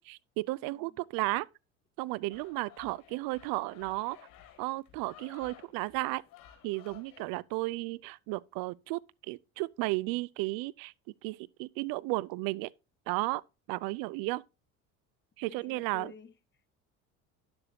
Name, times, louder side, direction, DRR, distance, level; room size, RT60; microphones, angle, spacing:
voice 1, 0.0-1.5 2.0-4.2 4.6-6.2 6.6-9.0 9.3-10.9 11.2-12.7 13.1-13.4 13.7-14.4 15.4-16.1, right 21 dB, 65° right, 0.5 m, -34 dB
voice 2, 0.6-1.1 15.5-16.7, left 7 dB, 30° left, 1.1 m, -52 dB
sound 1, 2.3-7.3, left 11 dB, 60° left, 2.3 m, -55 dB
10.5 x 7.1 x 2.7 m
hypercardioid pair, 80°, 38 cm